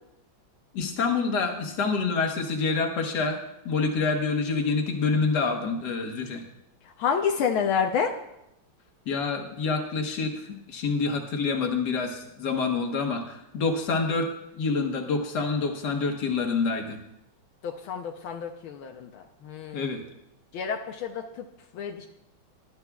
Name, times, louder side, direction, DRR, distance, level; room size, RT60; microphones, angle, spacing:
voice 1, 0.7-3.4 3.7-6.4 9.1-17.0 19.7-20.0, left 4 dB, 55° left, 3 dB, 1.8 m, -27 dB
voice 2, 6.8-8.1 17.6-19.9 20.5-21.5 21.7-22.1, left 7 dB, 80° left, 4 dB, 1.6 m, -29 dB
19.5 x 11.5 x 2.3 m, 0.83 s
omnidirectional pair, 2.2 m